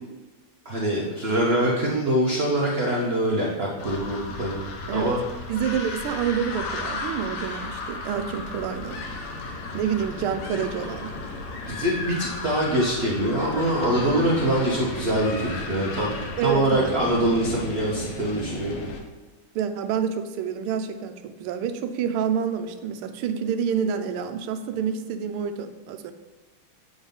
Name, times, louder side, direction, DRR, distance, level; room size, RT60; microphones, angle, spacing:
voice 1, 0.6-5.2 11.7-16.1 16.4-18.8, right 1 dB, 45° right, -4 dB, 0.9 m, -24 dB
sound 1, 3.8-19.0, left 3 dB, 85° left, 1.9 m, -34 dB
voice 2, 5.5-9.0 9.7-11.1 16.4-16.9 19.5-26.1, right 7 dB, 80° right, 8 dB, 1.5 m, -28 dB
7.9 x 3.9 x 5.3 m, 1.3 s
omnidirectional pair, 2.4 m